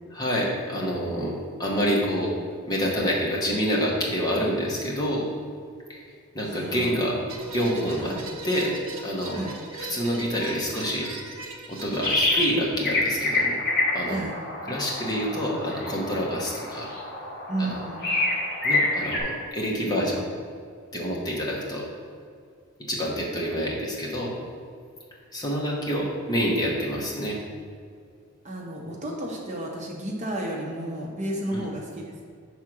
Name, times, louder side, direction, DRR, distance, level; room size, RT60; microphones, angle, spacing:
voice 1, 0.1-1.3 1.6-2.3 2.7-5.3 5.9-6.0 6.3-7.2 7.5-8.2 8.4-8.7 9.0-9.4 9.9-11.1 11.7-13.6 13.9-14.2 14.7-16.9 17.6-17.7 18.6-20.2 20.9-21.8 22.9-24.3 25.3-27.4 31.5-31.7, equal, 20° left, -3 dB, 0.9 m, -27 dB
voice 2, 6.4-7.2 8.0-8.3 9.3-9.6 14.0-14.3 17.5-18.0 28.4-32.2, right 1 dB, 35° right, -1 dB, 0.8 m, -32 dB
sound 1, 7.3-12.5, right 3 dB, 70° right, 0.8 m, -39 dB
sound 2, 12.0-12.6 12.8-19.2, left 2 dB, 45° left, 1.5 m, -27 dB
5.9 x 3.7 x 6.0 m, 2.2 s
head